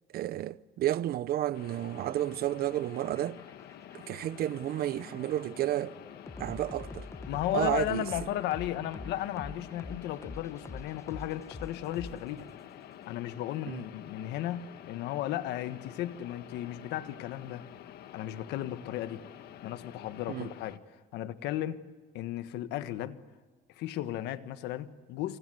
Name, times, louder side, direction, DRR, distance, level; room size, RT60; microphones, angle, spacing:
voice 1, 0.1-3.4 3.9-5.9 6.4-7.1 7.5-8.1 13.7-13.8 20.3-20.5, right 13 dB, 65° right, 0.9 m, -31 dB
sound 1, 1.5-20.8, left 11 dB, 70° left, 1.6 m, -49 dB
sound 2, 2.8-12.6, left 2 dB, 15° left, 1.6 m, -45 dB
voice 2, 7.3-12.5 13.1-17.7 18.1-19.2 19.6-20.8 21.1-21.8 22.1-23.2 23.7-25.4, left 13 dB, 90° left, 1.5 m, -35 dB
28.0 x 27.0 x 8.0 m
cardioid pair, 110°, 17 cm